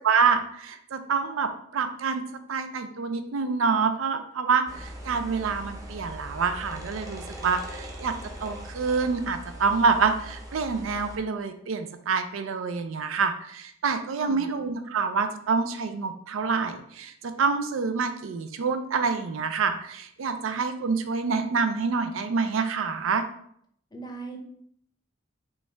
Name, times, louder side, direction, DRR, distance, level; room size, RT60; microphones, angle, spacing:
voice 1, 0.0-2.2 2.5-8.1 8.4-17.1 17.4-23.2, right 5 dB, 85° right, 9 dB, 0.4 m, -27 dB
sound 1, 4.7-11.2, equal, 20° right, 0.7 m, -41 dB
voice 2, 14.2-14.5 23.9-24.4, right 3 dB, 20° left, 2 dB, 0.6 m, -39 dB
5.2 x 2.3 x 3.2 m, 0.67 s
head